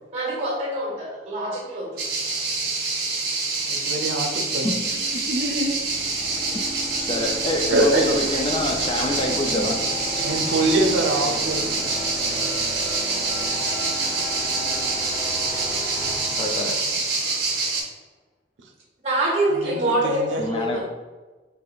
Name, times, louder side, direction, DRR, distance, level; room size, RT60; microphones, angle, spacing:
voice 1, 0.1-2.0 19.0-20.9, right 1 dB, 35° right, -1 dB, 1.1 m, -25 dB
sound 1, 2.0-17.8, right 3 dB, 60° right, 0.8 m, -26 dB
voice 2, 3.7-4.7 5.1-5.8 7.7-8.0 10.2-11.7 19.6-20.6, right 1 dB, 90° right, 3 dB, 0.5 m, -24 dB
sound 2, 4.3-17.4, left 1 dB, 10° left, 0.9 m, -35 dB
voice 3, 7.0-9.8 16.3-17.0 20.4-20.9, left 1 dB, 30° left, 3 dB, 0.4 m, -26 dB
4.6 x 2.9 x 2.4 m, 1.3 s
head